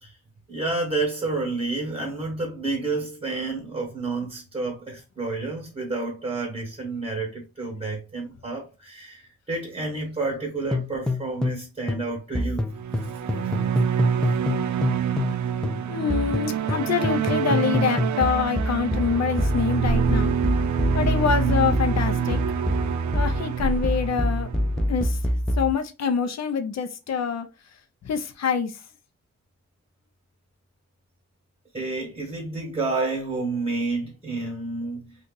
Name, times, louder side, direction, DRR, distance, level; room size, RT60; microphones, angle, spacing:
voice 1, 0.5-12.7 31.7-35.1, right 3 dB, 20° right, 1.3 m, -30 dB
sound 1, 10.7-11.6 11.9-15.4 15.6-25.7, left 1 dB, 5° left, 0.4 m, -26 dB
sound 2, 12.7-25.2, right 8 dB, 75° right, 0.5 m, -27 dB
voice 2, 15.9-20.3 20.9-22.4 23.1-24.5 24.9-25.2 25.6-27.5 28.0-28.7, left 6 dB, 65° left, 0.7 m, -25 dB
2.7 x 2.5 x 3.7 m
cardioid pair, 85°, 29 cm